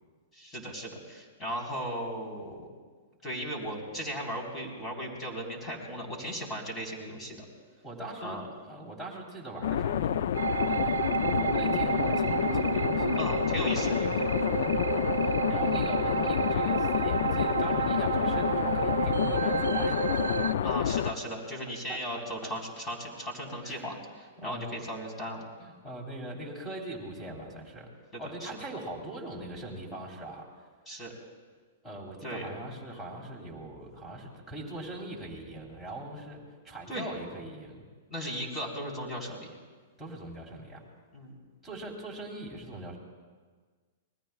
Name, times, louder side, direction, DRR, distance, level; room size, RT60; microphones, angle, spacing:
voice 1, 0.3-2.7 3.2-7.5 8.2-8.5 13.1-13.9 20.6-25.4 28.1-28.5 30.9-31.1 32.2-32.5 36.9-37.1 38.1-39.6 41.1-41.4, equal, 20° left, 0 dB, 4.3 m, -37 dB
voice 2, 7.8-13.3 13.8-20.0 21.9-22.5 23.6-24.0 24.4-24.8 25.6-27.9 28.2-30.5 31.8-37.9 40.0-40.8 41.6-43.0, right 1 dB, 5° left, -1 dB, 3.5 m, -41 dB
sound 1, 9.6-21.1, left 9 dB, 65° left, 0.5 m, -28 dB
sound 2, 10.3-20.5, right 8 dB, 85° right, 0.5 m, -31 dB
27.5 x 20.5 x 2.4 m, 1.5 s
hypercardioid pair, 115°, 0 cm